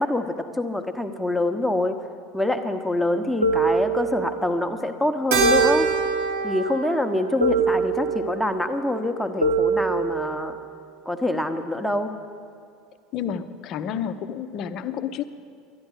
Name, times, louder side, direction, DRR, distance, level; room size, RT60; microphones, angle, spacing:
voice 1, 0.0-2.0 2.3-5.9 6.4-10.6 11.1-12.2, left 1 dB, ahead, 5 dB, 0.9 m, -25 dB
sound 1, 3.4-4.6 5.4-6.6 7.4-8.6 9.4-10.6, right 4 dB, 85° right, 0.8 m, -24 dB
Keyboard (musical), 5.3-9.9, right 4 dB, 60° right, 1.3 m, -28 dB
voice 2, 13.1-15.2, left 8 dB, 45° left, 11 dB, 0.7 m, -30 dB
12.0 x 10.5 x 8.0 m, 2.3 s
figure-of-eight pair, 70°, 0 cm